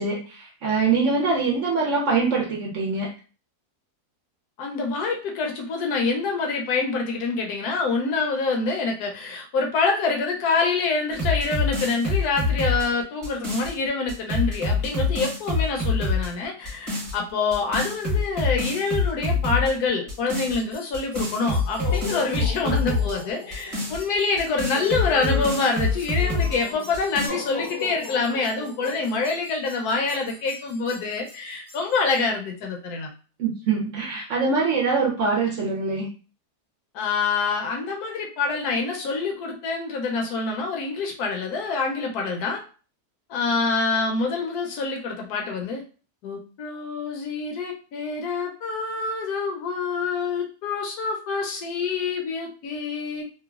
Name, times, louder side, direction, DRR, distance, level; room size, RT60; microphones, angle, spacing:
voice 1, 0.0-3.1 33.4-36.1, right 4 dB, 65° right, -2 dB, 0.8 m, -23 dB
voice 2, 4.6-33.1 36.9-42.6 43.3-45.8 46.2-53.2, left 4 dB, 75° left, 2 dB, 1.1 m, -26 dB
sound 1, 11.1-13.7 14.1-16.3 16.6-17.1 17.5-19.7 20.1-20.6 20.9-23.1 23.5-26.6 26.9-27.3, left 3 dB, 20° right, 1.0 m, -25 dB
sound 2, 20.3-32.3, left 4 dB, 55° left, 0.8 m, -39 dB
3.0 x 2.2 x 2.3 m, 0.37 s
omnidirectional pair, 1.7 m